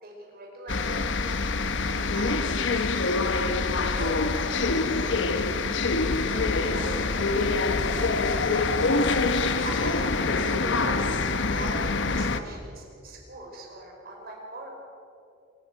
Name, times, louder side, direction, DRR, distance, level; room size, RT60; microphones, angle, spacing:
voice 1, 0.0-1.3 1.8-2.9 3.3-4.5 4.9-5.5 6.3-8.8 9.2-11.0 11.3-14.7, right 1 dB, 50° right, 0 dB, 5.4 m, -42 dB
sound 1, 0.7-12.4, left 3 dB, 65° left, 1.0 m, -25 dB
sound 2, 6.0-11.3, equal, ahead, 5.3 m, -42 dB
26.0 x 16.0 x 6.4 m, 2.6 s
head